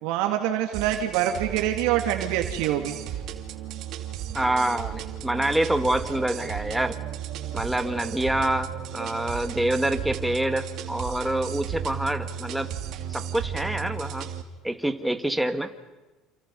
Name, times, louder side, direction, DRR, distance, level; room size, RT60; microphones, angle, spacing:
voice 1, 0.0-3.0, right 11 dB, 80° right, 4 dB, 2.4 m, -25 dB
sound 1, 0.7-14.4, right 9 dB, 60° right, 2.7 m, -34 dB
voice 2, 4.3-7.0 7.5-12.7 13.1-14.3 14.6-15.7, right 1 dB, 5° right, 8 dB, 2.0 m, -26 dB
28.5 x 28.0 x 5.5 m, 1.1 s
cardioid pair, 120°, 0 cm